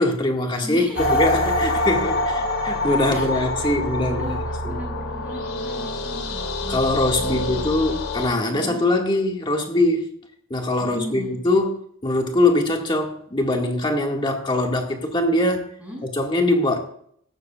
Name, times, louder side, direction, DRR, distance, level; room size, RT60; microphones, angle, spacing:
voice 1, 0.0-4.4 4.6-4.7 6.7-10.1 10.5-15.7 16.1-16.8, left 2 dB, 25° left, 1.9 m, -22 dB
voice 2, 0.6-1.2 3.1-3.7 4.1-8.0 8.5-8.8 10.8-11.3 15.8-16.0, equal, 5° right, 6.0 m, -37 dB
sound 1, 0.9-8.3, left 1 dB, 80° left, 2.8 m, -25 dB
16.5 x 13.0 x 2.4 m
head